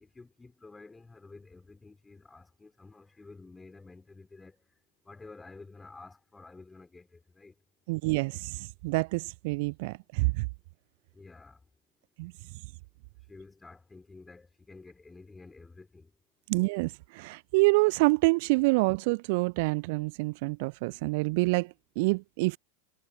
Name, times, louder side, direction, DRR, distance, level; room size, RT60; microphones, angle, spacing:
voice 1, 0.0-4.6 5.1-7.5 11.1-11.6 13.3-16.1, left 3 dB, 10° left, 3.7 m, -51 dB
voice 2, 7.9-10.5 12.2-12.3 16.5-22.6, right 26 dB, 50° right, 0.4 m, -27 dB
figure-of-eight pair, 90°, 0 cm